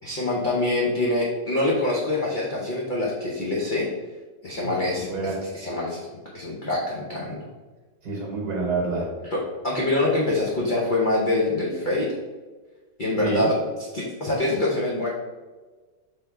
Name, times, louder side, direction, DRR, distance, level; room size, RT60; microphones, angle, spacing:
voice 1, 0.0-3.9 4.4-5.1 5.5-6.0 6.3-7.4 9.3-12.1 13.0-13.5 13.9-15.1, left 2 dB, 45° left, -5 dB, 0.6 m, -25 dB
voice 2, 4.6-5.4 8.0-9.0 13.2-13.5, right 3 dB, 70° right, -3 dB, 1.5 m, -28 dB
3.5 x 3.3 x 4.4 m, 1.3 s
omnidirectional pair, 1.9 m